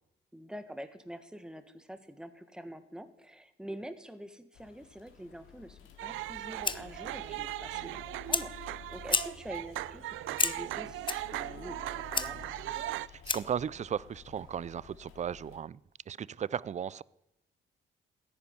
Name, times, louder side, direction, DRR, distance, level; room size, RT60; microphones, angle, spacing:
voice 1, 0.3-12.5, right 1 dB, 5° right, 1.6 m, -46 dB
sound 1, 4.5-15.6, left 8 dB, 85° left, 2.7 m, -53 dB
sound 2, 6.0-13.1, right 16 dB, 90° right, 0.5 m, -39 dB
Fire, 6.2-13.7, left 4 dB, 25° left, 0.8 m, -36 dB
voice 2, 13.1-15.8 16.1-17.0, right 8 dB, 35° right, 0.5 m, -36 dB
14.0 x 11.0 x 9.6 m
cardioid pair, 90°, 20 cm